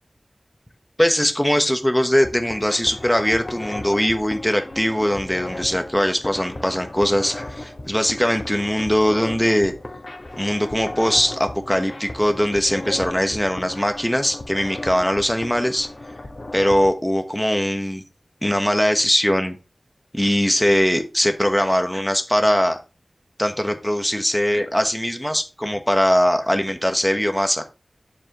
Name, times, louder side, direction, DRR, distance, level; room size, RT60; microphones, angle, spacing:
voice 1, 1.0-9.7 10.4-15.9 16.5-18.0 18.4-19.6 20.1-22.8 23.4-27.6, equal, 5° left, 6 dB, 1.1 m, -21 dB
sound 1, 2.2-16.9, left 2 dB, 45° left, 1.3 m, -35 dB
7.5 x 7.4 x 3.0 m, 0.30 s
wide cardioid pair, 60°, 0 cm